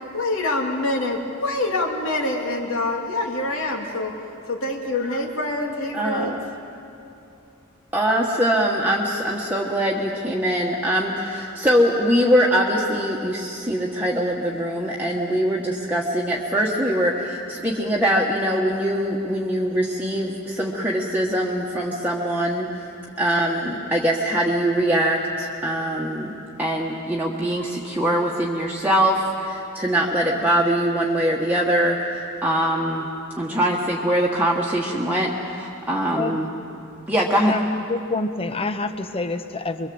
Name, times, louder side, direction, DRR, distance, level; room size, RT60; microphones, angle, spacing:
voice 1, 0.1-4.1 4.5-6.4, left 2 dB, 65° left, 1 dB, 2.8 m, -25 dB
voice 2, 5.9-6.4 7.9-22.7 23.2-26.3 26.6-33.1 33.4-36.5 37.1-37.5, equal, 10° right, -3 dB, 1.5 m, -22 dB
voice 3, 37.4-39.9, left 2 dB, 25° left, 9 dB, 1.0 m, -27 dB
25.0 x 23.0 x 7.9 m, 2.7 s
head